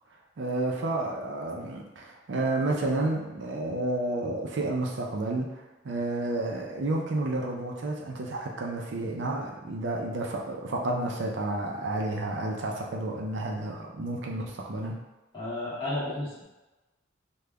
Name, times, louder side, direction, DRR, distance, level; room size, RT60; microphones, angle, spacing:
voice 1, 0.4-15.0, right 2 dB, 60° right, 0 dB, 0.4 m, -31 dB
voice 2, 15.3-16.4, left 1 dB, 25° left, -9 dB, 1.2 m, -32 dB
5.0 x 2.2 x 2.2 m, 1.1 s
head